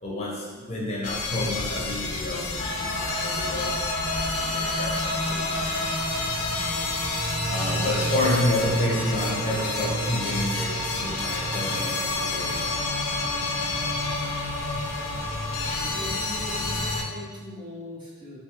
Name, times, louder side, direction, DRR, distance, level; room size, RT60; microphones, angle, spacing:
voice 1, 0.0-6.0 7.5-12.9, left 1 dB, 30° left, -4 dB, 0.5 m, -30 dB
sound 1, 1.0-17.0, left 4 dB, 85° left, 0.4 m, -31 dB
Thunder, 1.4-9.7, equal, 90° right, 0.9 m, -44 dB
sound 2, 2.6-17.0, equal, 65° right, 0.6 m, -31 dB
voice 2, 15.8-18.4, left 1 dB, 20° right, -6 dB, 0.4 m, -40 dB
2.3 x 2.3 x 2.9 m, 1.4 s
head